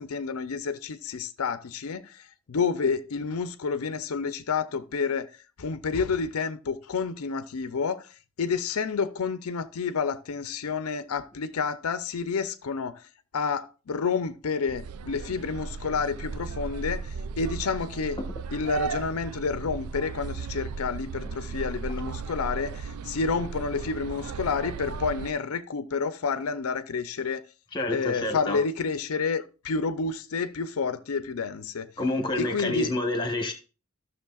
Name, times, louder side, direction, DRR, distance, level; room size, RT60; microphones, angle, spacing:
voice 1, 0.0-5.3 5.6-8.1 8.4-13.0 13.3-18.2 18.5-27.4 27.9-31.9 32.4-32.9, left 5 dB, 80° left, 0.5 m, -29 dB
sound 1, 14.7-25.3, right 5 dB, 85° right, 0.4 m, -36 dB
voice 2, 27.7-28.6 32.0-33.5, left 2 dB, 20° left, 1.2 m, -28 dB
14.0 x 6.4 x 2.3 m
head